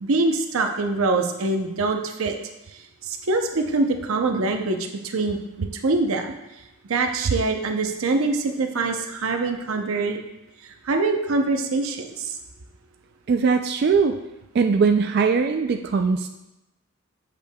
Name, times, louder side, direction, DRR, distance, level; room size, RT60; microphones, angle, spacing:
voice 1, 0.0-2.4 3.0-4.8 5.0-6.3 6.9-10.2 10.8-12.4, right 3 dB, 85° right, 5 dB, 0.7 m, -24 dB
voice 2, 13.3-14.2 14.5-16.3, right 5 dB, 50° right, 6 dB, 0.3 m, -20 dB
8.2 x 6.7 x 2.3 m, 0.95 s
head